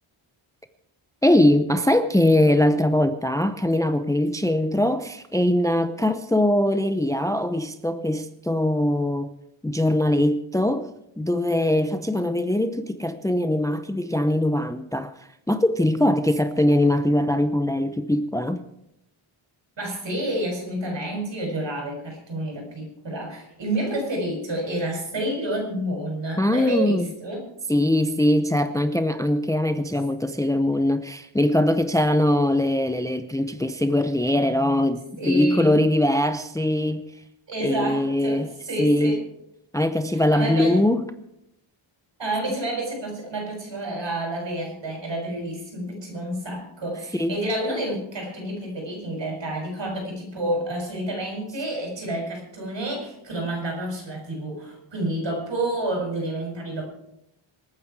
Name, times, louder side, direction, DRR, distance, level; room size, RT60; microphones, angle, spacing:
voice 1, 1.2-9.3 9.6-10.9 11.2-18.6 26.4-27.1 27.7-37.1 37.6-38.5 38.8-39.2 39.7-41.0 47.1-47.4, left 1 dB, 5° left, 0.7 m, -22 dB
voice 2, 19.8-27.4 35.2-35.8 37.5-39.2 40.1-40.8 42.2-56.9, right 1 dB, 60° right, 7.1 m, -29 dB
26.5 x 9.3 x 4.7 m
wide cardioid pair, 135°, 50 cm